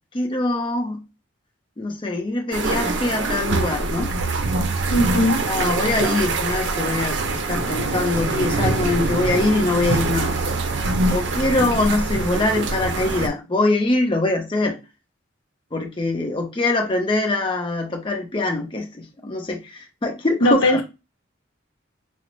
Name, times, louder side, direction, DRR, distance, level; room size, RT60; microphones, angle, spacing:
voice 1, 0.1-1.0 1.8-4.1 5.4-10.4 11.1-14.8 15.7-20.8, left 2 dB, 25° left, 0.6 m, -23 dB
sound 1, 2.5-13.3, right 3 dB, 65° right, 0.5 m, -24 dB
voice 2, 4.9-5.4 20.4-20.8, left 1 dB, 90° left, 0.7 m, -18 dB
3.8 x 2.0 x 3.0 m
head